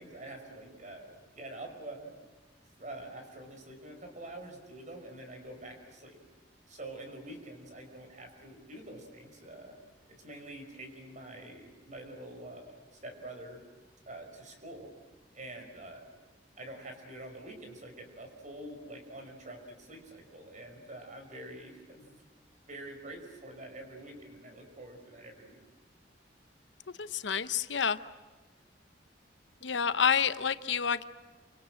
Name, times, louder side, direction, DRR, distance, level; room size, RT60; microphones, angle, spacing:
voice 1, 0.0-2.1 2.8-6.2 6.7-9.7 10.2-13.6 14.1-14.9 15.3-16.1 16.6-22.2 22.7-25.6, right 1 dB, 45° right, 5 dB, 5.3 m, -46 dB
voice 2, 27.0-28.0 29.6-31.0, left 7 dB, 75° left, 12 dB, 0.9 m, -28 dB
28.5 x 26.0 x 7.8 m, 1.3 s
head